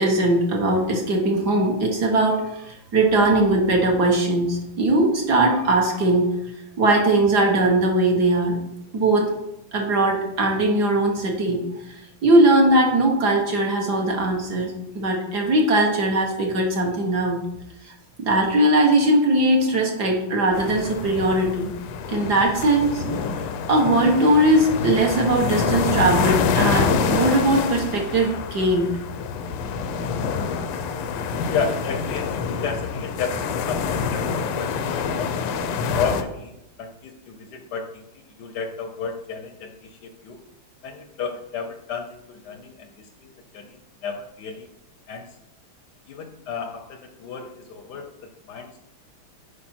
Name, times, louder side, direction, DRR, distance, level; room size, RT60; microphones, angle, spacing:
voice 1, 0.0-6.3 6.8-8.6 8.9-9.3 9.7-11.6 11.9-17.4 17.8-17.9 18.2-21.7 22.1-23.0 23.7-28.9, right 1 dB, 55° right, 0 dB, 1.6 m, -20 dB
sound 1, 20.5-36.2, left 5 dB, 85° left, 1.5 m, -26 dB
voice 2, 31.5-36.5 36.8-38.0 38.4-40.4 40.8-44.7 45.1-45.3 46.1-48.8, left 5 dB, 65° left, 6 dB, 1.0 m, -33 dB
8.7 x 5.1 x 4.3 m, 0.86 s
omnidirectional pair, 2.4 m